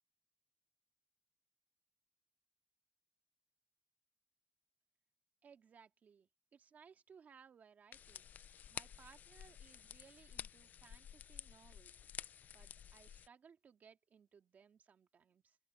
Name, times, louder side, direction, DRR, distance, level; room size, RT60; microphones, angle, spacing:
voice 1, 5.4-8.3 8.7-12.0 12.5-15.6, right 6 dB, 70° right, 2.3 m, -63 dB
sound 1, 7.9-13.3, left 9 dB, 80° left, 0.3 m, -51 dB
open air
cardioid pair, 60°, 3 cm